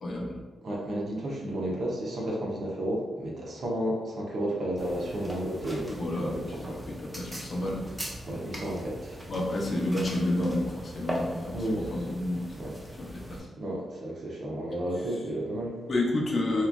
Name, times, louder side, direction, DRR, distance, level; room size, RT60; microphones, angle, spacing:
voice 1, 0.0-0.4 5.9-6.4 6.9-8.0 9.3-12.6 13.0-13.5 15.9-16.7, left 1 dB, 45° left, -2 dB, 0.5 m, -30 dB
voice 2, 0.6-6.8 8.3-9.3 11.5-12.1 12.6-12.7 13.3-15.8, right 1 dB, 55° right, -3 dB, 0.7 m, -32 dB
sound 1, 4.8-13.4, equal, 10° right, 0.4 m, -40 dB
2.9 x 2.4 x 2.2 m, 1.3 s
wide cardioid pair, 145°, 0 cm